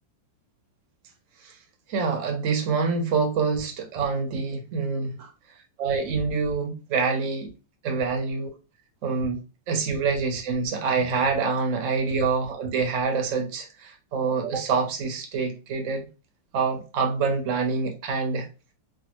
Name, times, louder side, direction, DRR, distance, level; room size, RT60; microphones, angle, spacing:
voice 1, 1.9-5.3 5.8-7.5 7.8-8.5 9.0-9.4 9.7-16.1 16.5-18.5, right 5 dB, 55° right, 0.9 m, -26 dB
3.4 x 2.3 x 2.9 m
omnidirectional pair, 2.0 m